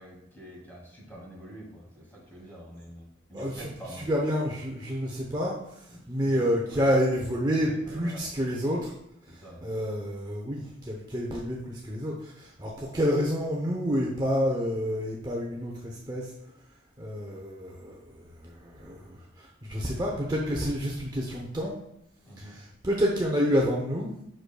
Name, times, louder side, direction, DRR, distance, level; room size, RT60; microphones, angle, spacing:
voice 1, 0.0-4.0 5.9-6.4 6.7-6.9 7.7-8.2 9.4-9.7 22.3-22.6, equal, 10° left, -3 dB, 2.0 m, -46 dB
voice 2, 3.3-8.9 9.2-16.3 17.0-21.8 22.4-24.1, equal, 20° right, -2 dB, 0.7 m, -29 dB
7.7 x 6.3 x 2.3 m, 0.81 s
head